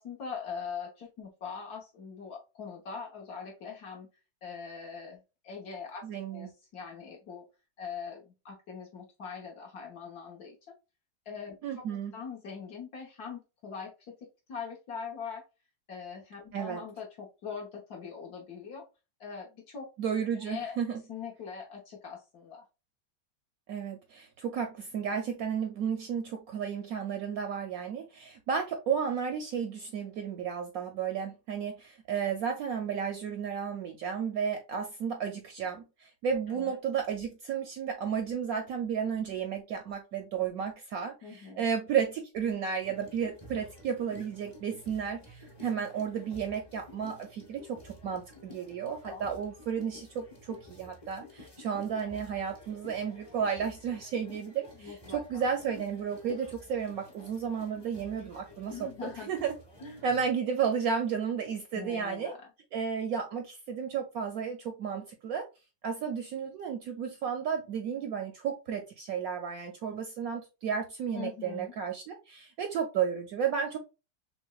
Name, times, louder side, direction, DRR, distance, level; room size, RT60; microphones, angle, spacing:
voice 1, 0.0-4.1 4.4-6.0 6.3-7.4 7.8-10.8 11.3-11.9 12.1-14.1 14.5-15.4 15.9-18.9 19.2-19.9 20.4-20.8 21.1-22.6 36.5-36.8 41.2-41.6 49.1-49.4 54.8-55.4 58.7-59.3 59.8-60.0 61.7-62.4 71.1-71.7, left 6 dB, 65° left, -1 dB, 1.5 m, -42 dB
voice 2, 6.0-6.5 11.6-12.2 16.5-16.8 20.0-21.0 23.7-59.5 60.0-62.3 62.7-65.5 65.8-73.8, right 7 dB, 70° right, 5 dB, 0.9 m, -33 dB
sound 1, 42.8-60.3, left 2 dB, 20° left, 0.7 m, -51 dB
5.9 x 2.1 x 2.3 m, 0.28 s
omnidirectional pair, 1.9 m